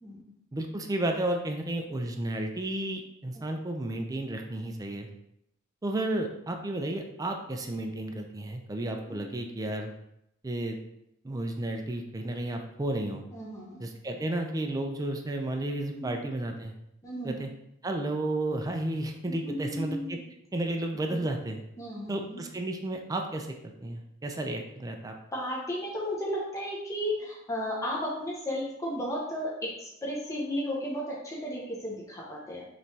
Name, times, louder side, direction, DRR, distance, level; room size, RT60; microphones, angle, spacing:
voice 1, 0.0-0.3 3.3-3.4 9.1-9.3 13.3-13.8 15.9-16.2 17.0-17.4 19.3-20.2 21.1-21.3 21.8-22.4 25.3-32.7, equal, 15° left, -5 dB, 0.8 m, -34 dB
voice 2, 0.5-5.1 5.8-9.9 10.4-10.8 11.2-13.2 13.8-16.7 17.2-17.5 17.8-20.2 20.5-21.6 22.1-25.1, right 1 dB, 15° right, 3 dB, 0.4 m, -32 dB
5.3 x 3.0 x 2.8 m, 0.78 s
head